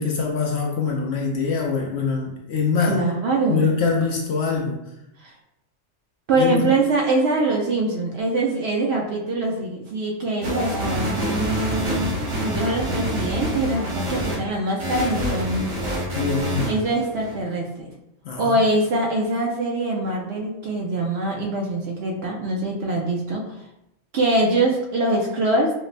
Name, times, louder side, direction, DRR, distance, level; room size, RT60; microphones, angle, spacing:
voice 1, 0.0-3.0 3.5-4.8 6.4-6.6 16.1-16.8 18.2-18.6, left 5 dB, 65° left, 0 dB, 0.7 m, -24 dB
voice 2, 2.9-3.7 5.2-5.3 6.3-15.7 16.7-17.9 18.4-23.6 24.1-25.7, right 2 dB, 65° right, -1 dB, 0.7 m, -23 dB
sound 1, 10.4-14.4 14.8-17.3, equal, 90° right, 1.5 m, -26 dB
5.0 x 2.1 x 2.5 m, 0.85 s
omnidirectional pair, 1.4 m